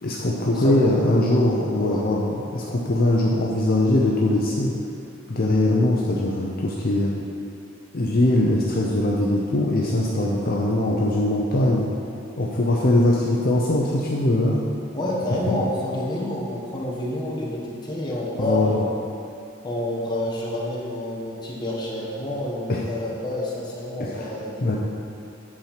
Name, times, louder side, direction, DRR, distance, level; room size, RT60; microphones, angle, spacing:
voice 1, 0.0-4.7 5.3-7.1 7.9-11.9 12.4-14.6 18.4-18.8 22.7-22.8 24.0-24.2 24.6-24.8, left 1 dB, 50° left, -3 dB, 0.7 m, -21 dB
voice 2, 0.5-2.1 14.9-18.9 19.6-24.8, left 1 dB, 20° left, -5 dB, 1.4 m, -28 dB
8.7 x 4.4 x 5.8 m, 2.5 s
head